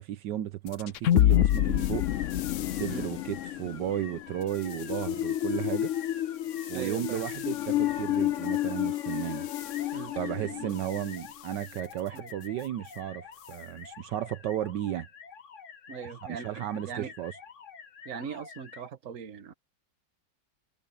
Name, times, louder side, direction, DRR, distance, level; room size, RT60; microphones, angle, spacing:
voice 1, 0.0-2.0 2.7-5.9 6.7-9.5 10.2-15.1 16.3-17.4, right 11 dB, 75° right, 1.4 m, -34 dB
sound 1, 0.7-11.2, left 13 dB, 85° left, 0.6 m, -29 dB
sound 2, 1.2-18.9, left 6 dB, 50° left, 1.3 m, -48 dB
voice 2, 6.7-7.2 9.9-10.7 12.1-12.3 15.9-17.1 18.0-19.5, right 6 dB, 50° right, 1.5 m, -40 dB
omnidirectional pair, 1.9 m